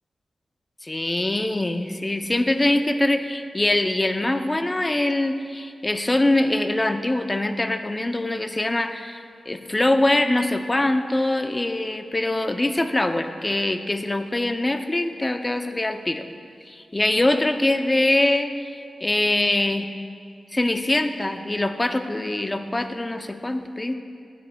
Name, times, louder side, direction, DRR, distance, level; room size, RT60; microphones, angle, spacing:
voice 1, 0.8-16.3 16.7-18.5 19.0-19.9 20.5-23.9, left 1 dB, 25° left, 7 dB, 0.6 m, -23 dB
15.5 x 9.1 x 2.3 m, 2.4 s
cardioid pair, 75°, 0 cm